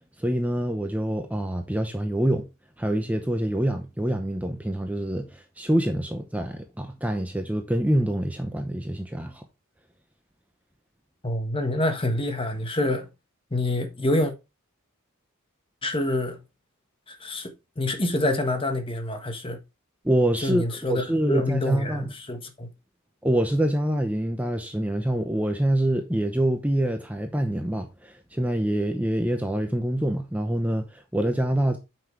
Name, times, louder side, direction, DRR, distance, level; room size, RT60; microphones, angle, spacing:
voice 1, 0.2-2.5 2.8-9.4 20.0-20.6 20.9-22.1 23.2-31.8, right 1 dB, 5° right, 0.7 m, -25 dB
voice 2, 11.2-13.1 13.5-14.3 15.8-16.4 17.1-19.6 20.4-22.7, left 1 dB, 25° left, 1.3 m, -27 dB
8.6 x 6.0 x 3.2 m
head